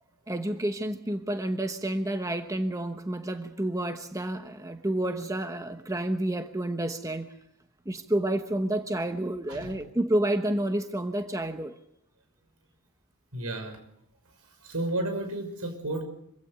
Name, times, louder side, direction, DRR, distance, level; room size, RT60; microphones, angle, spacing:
voice 1, 0.3-7.3 7.9-11.7, right 1 dB, 15° right, 1.0 m, -29 dB
voice 2, 9.5-9.8 13.3-13.8 14.3-16.0, right 2 dB, 85° right, 6.1 m, -33 dB
25.0 x 16.5 x 8.1 m
head